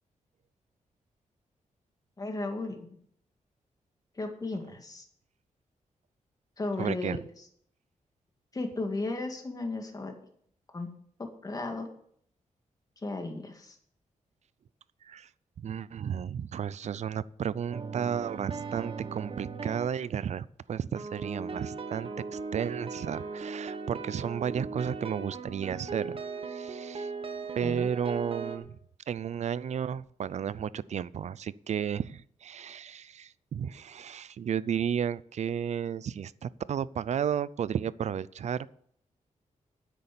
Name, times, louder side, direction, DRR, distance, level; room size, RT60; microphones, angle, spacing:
voice 1, 2.2-2.9 4.2-5.1 6.6-7.2 8.5-10.1 10.7-10.9 11.2-11.9 13.0-13.8 27.6-27.9, left 2 dB, 30° left, 4 dB, 2.1 m, -35 dB
voice 2, 6.8-7.2 15.0-15.3 15.6-26.2 26.5-27.1 27.5-28.8 29.1-38.7, right 8 dB, 60° right, 19 dB, 0.5 m, -33 dB
sound 1, 17.7-20.1 21.0-28.6, right 4 dB, 45° right, 1.3 m, -38 dB
9.6 x 8.4 x 6.9 m, 0.65 s
wide cardioid pair, 130°, 13 cm